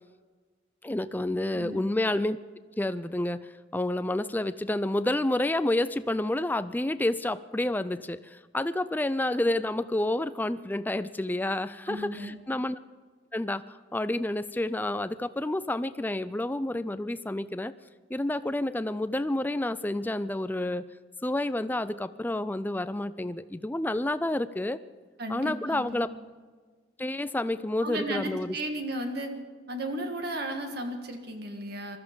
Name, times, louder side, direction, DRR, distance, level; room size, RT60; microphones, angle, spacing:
voice 1, 0.8-2.4 2.8-12.8 13.3-13.6 13.9-17.7 18.1-20.8 21.2-24.8 25.3-26.1 27.0-28.6, left 1 dB, 10° left, 13 dB, 0.4 m, -29 dB
voice 2, 1.5-1.8 11.9-12.4 25.2-26.0 27.8-29.3 29.7-32.0, right 1 dB, 55° right, 4 dB, 1.7 m, -34 dB
20.5 x 13.5 x 5.2 m, 1.5 s
head